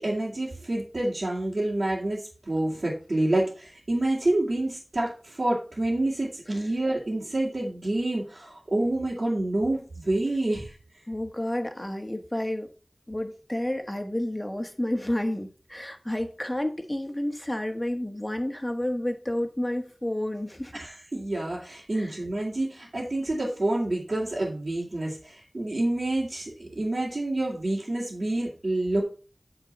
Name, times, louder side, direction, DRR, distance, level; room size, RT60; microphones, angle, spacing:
voice 1, 0.0-10.7 20.7-29.0, right 1 dB, 80° right, -6 dB, 2.5 m, -28 dB
voice 2, 11.1-12.7 13.1-20.8 21.9-22.1, left 1 dB, 20° left, 6 dB, 1.5 m, -30 dB
8.7 x 4.4 x 5.5 m, 0.36 s
wide cardioid pair, 40°, 0 cm